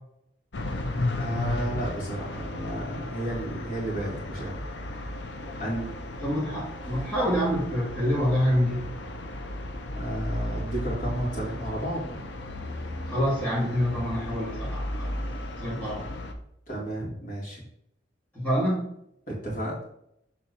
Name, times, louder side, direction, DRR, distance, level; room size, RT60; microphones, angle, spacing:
sound 1, 0.5-16.3, left 1 dB, 75° left, 0.8 m, -34 dB
voice 1, 1.2-4.6 5.6-5.9 9.9-12.2 16.7-17.7 19.3-19.8, right 1 dB, 45° left, -4 dB, 2.4 m, -32 dB
voice 2, 6.2-8.9 13.1-15.2 15.6-16.1 18.3-18.9, equal, 10° left, -8 dB, 2.3 m, -26 dB
6.8 x 3.7 x 4.3 m, 0.76 s
head